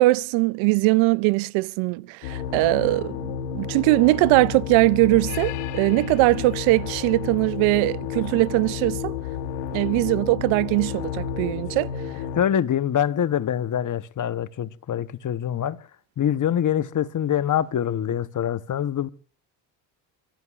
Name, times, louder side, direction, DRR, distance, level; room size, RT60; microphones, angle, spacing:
voice 1, 0.0-9.1 9.7-11.9, right 22 dB, 75° right, 0.6 m, -21 dB
sound 1, 2.2-12.4, left 8 dB, 85° left, 1.5 m, -31 dB
voice 2, 12.4-15.8 16.2-19.1, left 10 dB, 40° left, 1.0 m, -24 dB
29.0 x 15.0 x 2.5 m
supercardioid pair, 70°, 48 cm